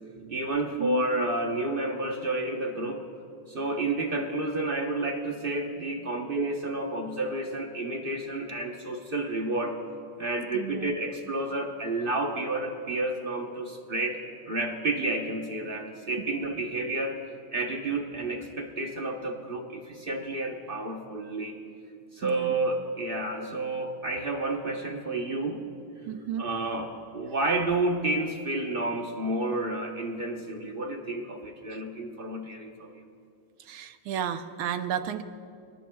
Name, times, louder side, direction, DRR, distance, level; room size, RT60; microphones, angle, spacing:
voice 1, 0.3-3.0 3.5-9.8 10.2-14.2 14.5-17.2 17.5-21.5 22.1-25.6 26.4-32.9, right 2 dB, 40° right, 2 dB, 0.7 m, -30 dB
voice 2, 10.5-10.9 22.2-22.5 26.1-26.6 33.6-35.2, right 9 dB, 75° right, 9 dB, 1.5 m, -33 dB
29.0 x 19.0 x 2.3 m, 2.4 s
omnidirectional pair, 2.4 m